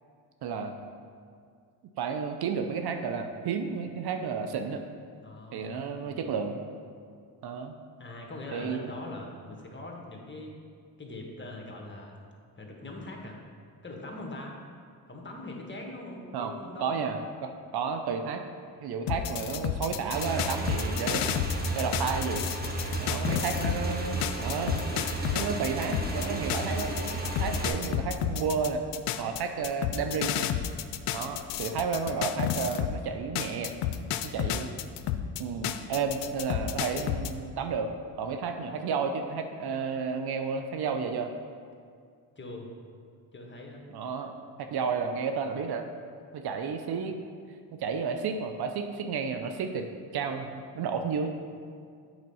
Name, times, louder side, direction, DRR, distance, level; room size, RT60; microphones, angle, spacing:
voice 1, 0.4-0.7 2.0-4.8 5.5-6.6 7.4-7.8 8.5-8.9 16.3-16.5 16.8-18.4 18.8-22.4 23.0-27.0 27.4-28.8 29.2-30.5 31.1-33.7 34.2-34.7 35.4-37.9 38.2-41.3 43.9-44.3 44.6-45.9 46.3-47.2 47.8-51.3, right 5 dB, 65° right, 6 dB, 0.7 m, -32 dB
voice 2, 5.2-6.3 8.0-10.5 11.0-12.2 12.6-13.4 13.8-14.5 15.1-17.2 19.0-19.1 22.9-23.5 24.9-25.6 42.3-42.7 43.3-43.8, left 2 dB, 25° left, -1 dB, 1.6 m, -42 dB
sound 1, 19.1-23.8 24.2-33.0 33.4-37.3, left 10 dB, 80° left, 0.5 m, -31 dB
Motorcycle / Engine, 20.1-27.7, right 2 dB, 20° right, 1.3 m, -33 dB
7.9 x 4.4 x 5.5 m, 2.2 s
supercardioid pair, 65°, 42 cm